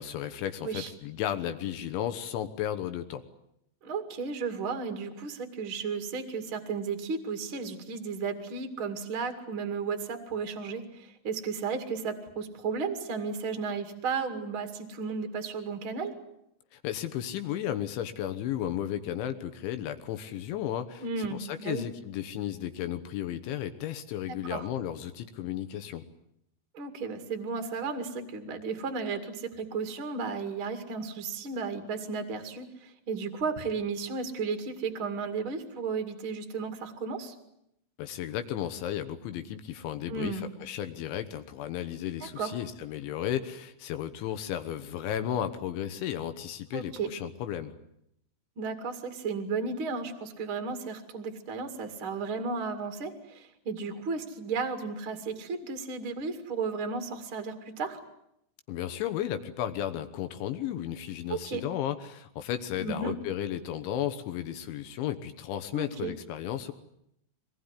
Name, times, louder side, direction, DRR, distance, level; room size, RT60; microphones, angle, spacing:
voice 1, 0.0-3.2 16.7-26.0 38.0-47.8 58.7-66.7, left 11 dB, 75° left, 9 dB, 3.3 m, -34 dB
voice 2, 3.8-16.1 21.0-21.8 24.4-24.7 26.7-37.3 40.1-40.5 42.2-42.5 46.7-47.1 48.6-58.0 61.3-61.6 62.8-63.1 65.7-66.1, right 5 dB, 40° right, 7 dB, 1.9 m, -34 dB
24.0 x 20.0 x 9.8 m, 0.78 s
omnidirectional pair, 5.9 m